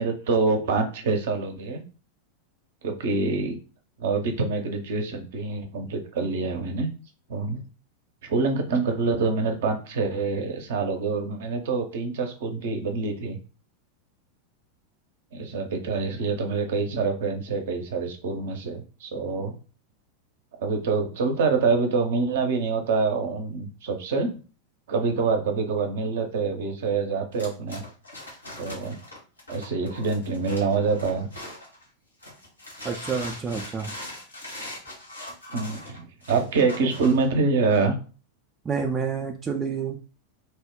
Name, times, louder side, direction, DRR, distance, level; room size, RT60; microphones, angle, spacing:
voice 1, 0.0-1.8 2.8-3.6 4.0-6.9 7.3-7.6 8.2-13.4 15.3-19.5 20.6-24.4 24.9-27.8 28.6-29.0 29.5-31.3 35.5-38.0, right 4 dB, 55° right, 4 dB, 0.6 m, -26 dB
sound 1, 27.3-31.8 32.2-37.3, left 1 dB, 85° left, 1.0 m, -40 dB
voice 2, 32.8-33.9 38.7-40.0, right 5 dB, 20° right, 2 dB, 0.4 m, -28 dB
2.7 x 2.1 x 3.6 m, 0.36 s
figure-of-eight pair, 90°, 0 cm